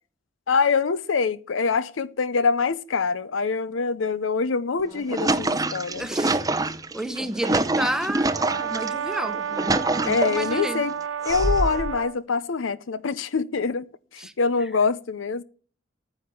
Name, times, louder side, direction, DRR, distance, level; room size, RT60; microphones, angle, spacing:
voice 1, 0.5-6.1 10.0-10.9 11.2-13.9 14.1-15.4, left 5 dB, 75° left, 0.6 m, -24 dB
sound 1, 4.8-8.9 9.3-10.6 11.2-12.0, right 2 dB, 20° right, 0.6 m, -25 dB
voice 2, 6.0-6.4 6.9-9.4 9.9-10.8 14.2-14.3, equal, 5° right, 1.0 m, -31 dB
Brass instrument, 8.3-12.2, right 7 dB, 80° right, 0.7 m, -31 dB
9.8 x 8.5 x 7.1 m
head